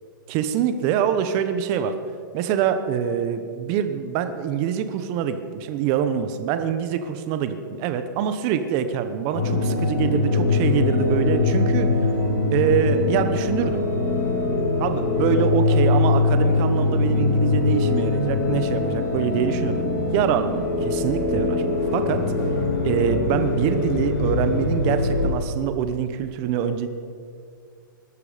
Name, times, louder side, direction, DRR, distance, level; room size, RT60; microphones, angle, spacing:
voice 1, 0.3-1.9 2.3-11.9 12.5-13.8 14.8-19.9 20.1-21.6 21.9-22.2 22.8-26.9, right 8 dB, 25° right, 9 dB, 1.0 m, -24 dB
sound 1, 9.3-25.3, left 3 dB, 30° left, 4.2 m, -22 dB
20.5 x 12.0 x 5.1 m, 2.3 s
hypercardioid pair, 160°, 11 cm